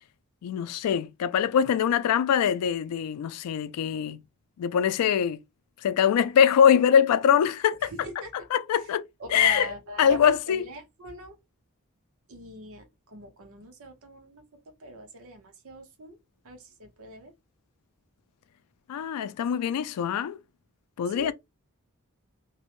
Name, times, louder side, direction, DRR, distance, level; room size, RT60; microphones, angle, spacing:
voice 1, 0.4-4.2 4.6-5.4 5.8-7.9 8.5-9.7 10.0-10.6 18.9-20.4 21.0-21.3, left 8 dB, 90° left, 0.3 m, -23 dB
voice 2, 7.9-8.5 8.7-8.9 9.2-11.4 12.3-14.4 14.8-16.2 16.4-17.3 21.1-21.3, right 2 dB, 65° right, 0.8 m, -40 dB
2.6 x 2.1 x 3.0 m
head